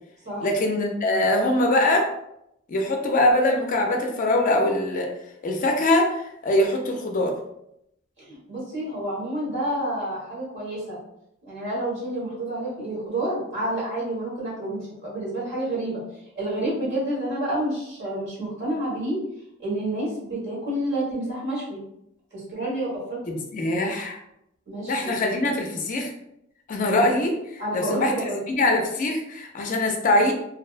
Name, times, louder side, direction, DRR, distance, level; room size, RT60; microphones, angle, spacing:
voice 1, 0.4-2.1 2.7-5.1 5.4-7.3 23.5-24.2 24.9-26.1 26.7-28.1 28.5-30.3, left 1 dB, 40° left, 2 dB, 0.4 m, -22 dB
voice 2, 8.2-11.0 11.4-16.0 16.3-19.2 19.6-21.8 22.3-23.4 24.7-25.1 27.6-28.4, right 1 dB, 60° right, -7 dB, 1.3 m, -29 dB
2.6 x 2.1 x 2.4 m, 0.79 s
head